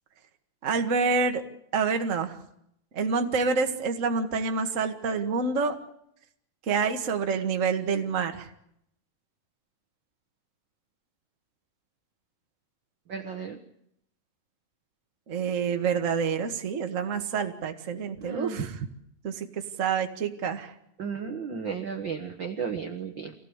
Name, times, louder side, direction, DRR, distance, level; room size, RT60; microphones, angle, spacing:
voice 1, 0.6-1.4 1.7-2.4 2.9-5.8 6.7-8.5 15.3-18.7 19.2-20.7, right 5 dB, 35° right, 5 dB, 1.5 m, -27 dB
voice 2, 13.1-13.6 18.2-18.7 21.0-23.3, right 6 dB, 50° right, 4 dB, 1.5 m, -34 dB
25.5 x 17.0 x 8.2 m, 0.76 s
omnidirectional pair, 3.8 m